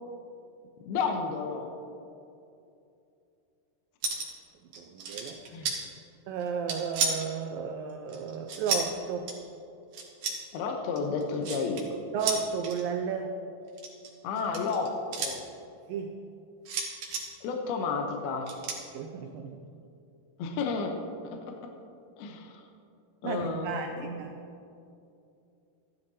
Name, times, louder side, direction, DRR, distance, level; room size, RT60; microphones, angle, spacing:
voice 1, 0.9-1.7 5.5-5.7 10.5-12.0 14.2-15.4 17.4-18.5 20.4-21.7 22.2-22.6 23.2-24.2, left 4 dB, 75° left, 3 dB, 2.5 m, -32 dB
sound 1, 4.0-4.4 4.7-5.8 6.4-7.3 8.1-8.9 9.3-9.4 9.9-10.4 11.0-11.8 12.2-12.8 13.7-15.3 16.7-17.2 18.5-18.8, right 4 dB, 60° right, 1.9 m, -32 dB
voice 2, 4.8-5.4 6.3-9.3 12.1-13.3 15.9-16.2 18.9-19.7 23.2-24.3, right 6 dB, 90° right, 4 dB, 2.0 m, -33 dB
15.0 x 11.5 x 2.7 m, 2.6 s
omnidirectional pair, 4.8 m